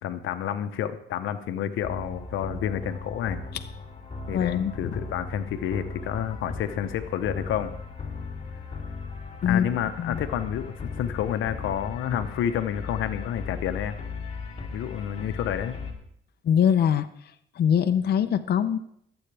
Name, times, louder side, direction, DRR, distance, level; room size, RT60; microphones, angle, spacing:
voice 1, 0.0-3.4 4.3-7.7 9.4-13.9 14.7-15.8, left 10 dB, 85° left, 9 dB, 0.9 m, -29 dB
sound 1, 1.8-15.9, left 4 dB, 30° left, 2.8 m, -37 dB
voice 2, 4.3-4.9 9.4-9.7 10.0-10.2 16.4-17.1 17.6-18.8, left 8 dB, 55° left, 8 dB, 0.7 m, -23 dB
20.5 x 8.1 x 3.4 m, 0.71 s
cardioid pair, 90°, 20 cm